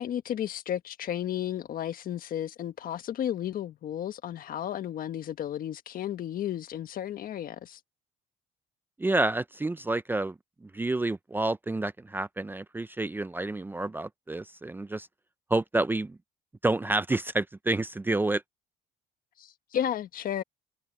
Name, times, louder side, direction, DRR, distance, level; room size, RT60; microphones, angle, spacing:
voice 1, 0.0-7.8 19.4-20.4, left 10 dB, 55° left, 1.4 m, -33 dB
voice 2, 9.0-10.3 10.6-15.1 15.5-16.2 16.6-18.4, right 2 dB, 10° right, 0.5 m, -29 dB
cardioid pair, 110°, 17 cm